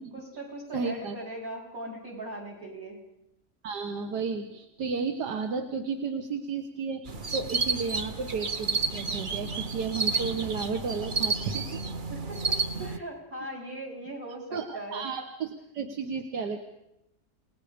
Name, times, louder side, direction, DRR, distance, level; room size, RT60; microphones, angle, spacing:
voice 1, 0.1-3.0 12.1-15.1, right 1 dB, 60° right, -2 dB, 5.4 m, -39 dB
voice 2, 0.7-1.2 3.6-11.8 14.5-16.6, right 5 dB, 85° right, 5 dB, 1.9 m, -33 dB
sound 1, 7.1-13.0, right 4 dB, 35° right, 1.1 m, -31 dB
28.5 x 20.0 x 5.1 m, 0.86 s
omnidirectional pair, 1.7 m